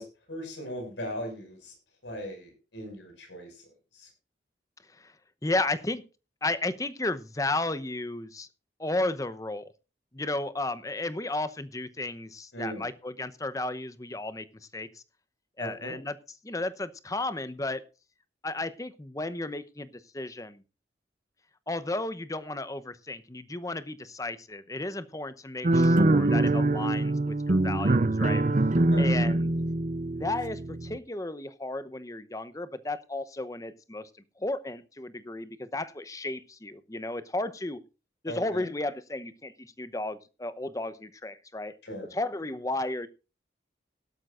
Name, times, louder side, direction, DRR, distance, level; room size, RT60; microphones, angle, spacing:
voice 1, 0.0-1.7 2.0-3.7 3.9-4.1 12.5-12.9 15.6-15.9 28.9-29.3 38.3-38.7 41.8-42.1, equal, 90° left, 4 dB, 6.0 m, -39 dB
voice 2, 5.4-6.0 6.4-8.5 8.8-9.7 10.1-14.5 14.7-15.0 15.6-16.2 16.4-17.8 18.4-19.9 20.1-20.6 21.7-28.4 29.0-29.5 30.1-34.0 34.4-37.8 38.2-41.7 42.1-43.1, left 2 dB, 20° left, 13 dB, 0.8 m, -33 dB
sound 1, 25.6-31.0, right 2 dB, 45° right, 0.7 m, -24 dB
17.5 x 12.0 x 2.5 m, 0.31 s
head